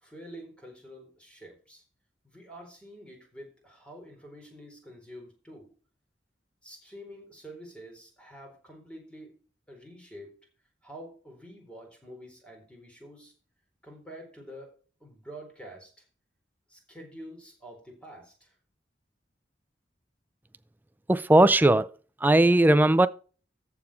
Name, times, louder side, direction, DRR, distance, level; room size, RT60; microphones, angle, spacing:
voice 1, 0.0-1.8 2.2-5.7 6.6-9.4 9.7-10.3 10.8-13.3 13.8-14.7 15.0-16.1 16.7-18.6, equal, 5° left, 4.1 m, -47 dB
voice 2, 21.1-21.9 22.2-23.1, right 1 dB, 10° right, 0.4 m, -18 dB
14.0 x 4.9 x 5.9 m
head